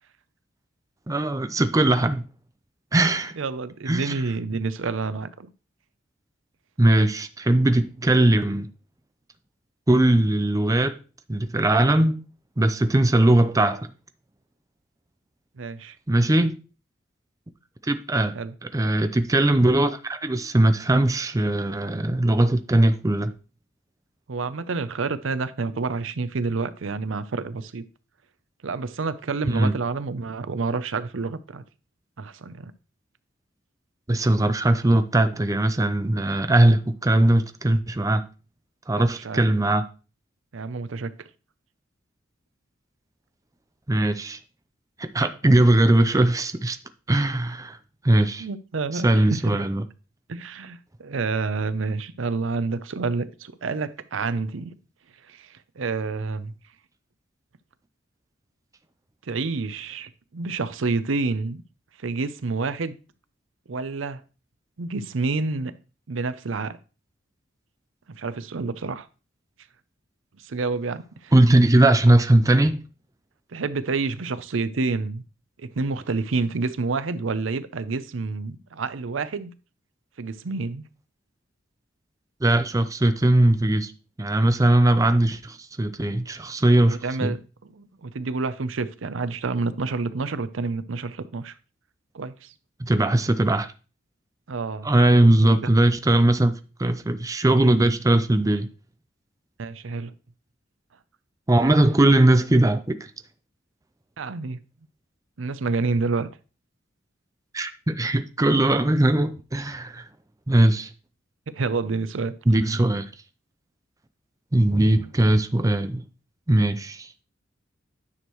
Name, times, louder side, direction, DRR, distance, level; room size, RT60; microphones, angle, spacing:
voice 1, 1.1-2.2 2.9-3.3 3.9-4.2 6.8-8.7 9.9-11.0 11.3-12.2 12.6-13.9 16.1-16.6 17.8-18.3 18.6-23.3 29.5-29.7 34.1-38.2 38.9-39.9 43.9-44.4 45.0-46.8 47.1-47.8 48.0-48.5 48.9-49.8 71.3-72.8 82.4-83.9 84.2-87.4 92.8-93.7 94.8-98.7 101.5-103.1 107.5-110.0 110.5-110.9 112.5-113.1 114.5-116.0 116.5-117.1, right 1 dB, 20° right, 0.5 m, -20 dB
voice 2, 3.4-5.5 15.6-16.0 18.3-18.5 24.3-27.8 28.6-31.6 32.2-32.7 39.0-39.5 40.5-41.1 48.4-49.6 50.3-54.7 55.3-56.5 59.3-61.6 62.0-63.0 63.7-64.2 64.8-65.7 66.1-66.8 68.1-69.1 70.4-71.3 73.5-75.2 75.6-79.5 80.2-80.8 86.9-91.5 92.1-92.5 94.5-95.6 99.6-100.1 104.2-104.6 105.4-106.3 111.6-112.3, right 4 dB, 90° right, 0.6 m, -28 dB
9.7 x 6.4 x 3.0 m
head